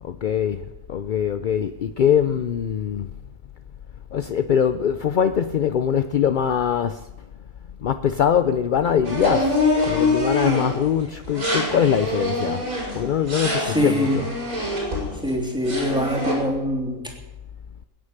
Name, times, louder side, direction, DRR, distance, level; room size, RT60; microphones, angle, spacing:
voice 1, 0.0-3.1 4.1-7.1 7.8-12.7 12.9-14.3, left 8 dB, 55° left, 0.5 m, -22 dB
sound 1, 9.0-10.8 11.2-15.4 15.6-16.3, left 2 dB, 80° right, 6.5 m, -25 dB
voice 2, 13.6-14.2 15.2-17.1, equal, 5° right, 2.9 m, -24 dB
21.5 x 9.8 x 6.7 m
omnidirectional pair, 1.4 m